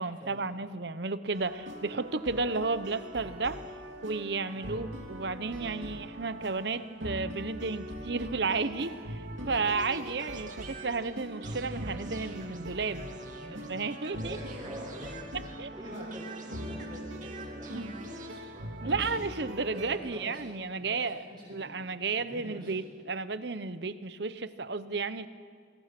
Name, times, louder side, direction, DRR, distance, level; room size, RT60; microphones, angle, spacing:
voice 1, 0.0-3.6 4.0-13.1 13.5-14.4 15.6-15.7 17.7-18.0 18.8-21.2 21.5-25.3, right 4 dB, 60° right, 13 dB, 0.9 m, -33 dB
sound 1, 1.3-19.9, equal, 80° right, 2.7 m, -41 dB
sound 2, 9.5-15.8 16.1-18.3, right 3 dB, 40° right, 2.2 m, -48 dB
voice 2, 13.2-19.1 19.7-21.7 22.2-22.7, equal, 20° right, -8 dB, 6.5 m, -46 dB
28.5 x 21.0 x 6.0 m, 2.1 s
head